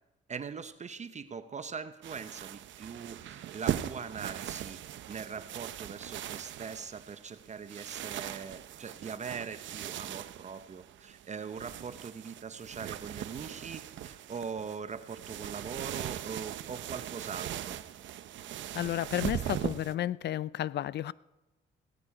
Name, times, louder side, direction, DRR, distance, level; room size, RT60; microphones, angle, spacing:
voice 1, 0.3-4.8 5.1-17.8, right 6 dB, 35° right, 11 dB, 0.8 m, -41 dB
sound 1, 2.0-19.9, right 11 dB, 70° right, 0.7 m, -40 dB
voice 2, 18.7-21.1, left 12 dB, 60° left, 21 dB, 0.5 m, -32 dB
17.0 x 13.0 x 4.9 m, 1.0 s
cardioid pair, 90°, 20 cm